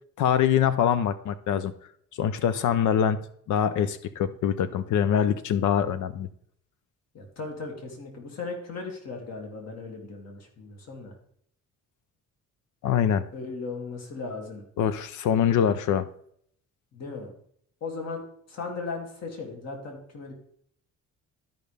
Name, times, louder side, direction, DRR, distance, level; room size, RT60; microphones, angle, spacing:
voice 1, 0.2-1.7 2.2-3.2 3.5-6.3 12.8-13.3 14.8-16.1, left 9 dB, 75° left, 13 dB, 0.6 m, -24 dB
voice 2, 7.1-11.1 13.3-14.6 16.9-17.3 17.8-18.2 18.5-20.3, left 4 dB, 55° left, 1 dB, 2.3 m, -37 dB
13.0 x 5.3 x 3.4 m, 0.66 s
cardioid pair, 90°, 30 cm